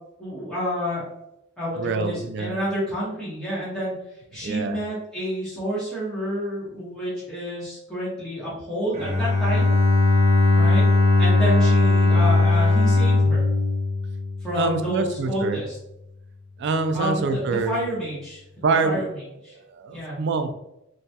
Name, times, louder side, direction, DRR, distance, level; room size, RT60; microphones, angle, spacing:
voice 1, 0.2-1.0 1.6-3.9 4.3-9.8 10.5-10.9 11.2-13.4 14.4-15.8 16.9-19.6 19.9-20.2, equal, ahead, -9 dB, 0.9 m, -29 dB
voice 2, 1.8-2.6 4.4-4.8 14.5-15.6 16.6-17.8 18.6-19.1 19.7-20.5, right 4 dB, 55° right, 8 dB, 0.3 m, -25 dB
Bowed string instrument, 8.9-14.9, left 3 dB, 30° right, 0.8 m, -19 dB
3.3 x 2.2 x 2.7 m, 0.86 s
head